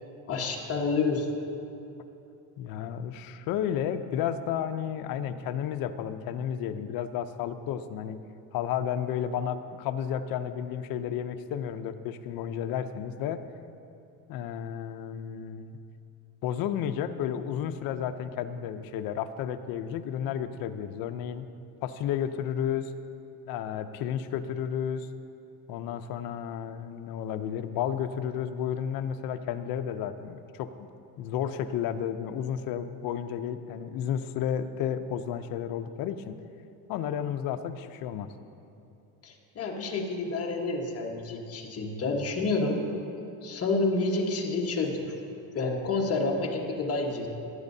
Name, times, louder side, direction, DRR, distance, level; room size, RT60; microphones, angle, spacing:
voice 1, 0.3-1.3 39.2-42.8 43.4-45.0 45.5-47.3, left 3 dB, 35° left, 1 dB, 1.4 m, -29 dB
voice 2, 2.6-8.2 8.5-13.4 14.3-15.7 16.4-21.5 21.8-22.9 23.5-25.1 25.7-30.9 31.2-36.4 36.9-38.3, left 9 dB, 55° left, 9 dB, 0.6 m, -32 dB
17.0 x 9.8 x 2.7 m, 2.8 s
cardioid pair, 130°, 42 cm